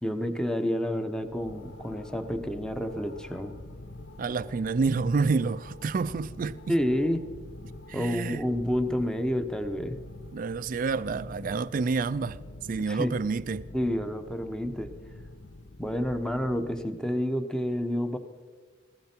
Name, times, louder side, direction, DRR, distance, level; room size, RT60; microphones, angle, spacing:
voice 1, 0.0-3.5 6.7-7.2 7.9-10.0 12.9-13.1 13.7-14.9 15.8-18.2, equal, 5° left, 0.8 m, -29 dB
sound 1, 1.1-17.1, left 2 dB, 75° left, 0.9 m, -46 dB
voice 2, 4.2-6.8 7.9-8.4 10.3-12.4 12.7-13.7, right 4 dB, 45° right, 0.4 m, -28 dB
16.0 x 15.0 x 4.4 m
head